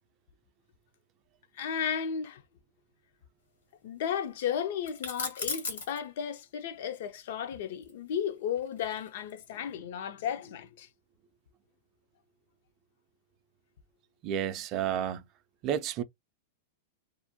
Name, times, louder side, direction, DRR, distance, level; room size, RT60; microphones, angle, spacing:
voice 1, 1.5-2.4 3.8-10.9, left 8 dB, 65° left, 0.4 m, -34 dB
sound 1, 4.8-6.0 7.8-9.4, left 4 dB, 90° left, 1.3 m, -37 dB
voice 2, 14.2-15.3 15.6-16.0, right 9 dB, 40° right, 0.4 m, -31 dB
2.5 x 2.1 x 2.7 m
hypercardioid pair, 130°, 0 cm